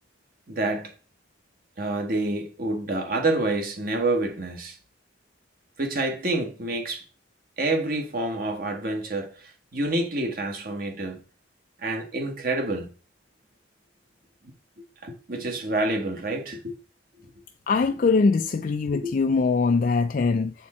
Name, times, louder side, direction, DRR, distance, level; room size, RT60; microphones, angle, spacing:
voice 1, 0.5-0.9 1.8-4.8 5.8-7.0 7.6-11.2 11.8-12.9 15.0-16.7 18.9-19.1, right 2 dB, 55° right, 1.3 m, -28 dB
voice 2, 17.7-20.5, left 4 dB, 50° left, 0.4 m, -22 dB
7.3 x 4.4 x 4.2 m
head